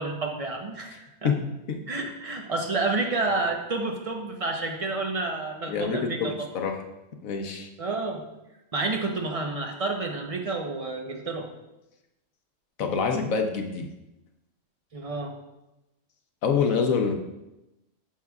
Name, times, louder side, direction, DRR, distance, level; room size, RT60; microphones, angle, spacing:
voice 1, 0.0-1.3 1.9-6.3 7.8-8.2 8.7-11.5 14.9-15.3, right 3 dB, 30° right, 2 dB, 0.9 m, -29 dB
voice 2, 5.7-6.8 7.2-7.7 12.8-13.9 16.4-17.1, left 5 dB, 80° left, 4 dB, 1.2 m, -26 dB
10.5 x 6.4 x 2.4 m, 0.95 s
omnidirectional pair, 1.4 m